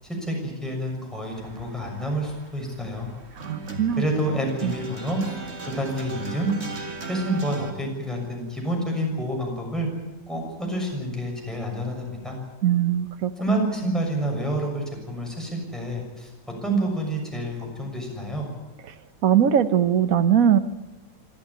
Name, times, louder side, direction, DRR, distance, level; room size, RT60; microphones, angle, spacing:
voice 1, 0.0-3.1 4.0-5.2 5.7-6.5 7.0-9.9 10.3-12.4 13.4-16.3 16.6-18.5, right 1 dB, ahead, 0 dB, 6.6 m, -28 dB
sound 1, 1.3-7.7, right 3 dB, 35° right, 2.3 m, -38 dB
voice 2, 3.4-4.0 4.6-4.7 12.6-13.3 19.2-20.6, right 9 dB, 55° right, 12 dB, 1.3 m, -20 dB
26.0 x 13.0 x 10.0 m, 1.1 s
omnidirectional pair, 1.9 m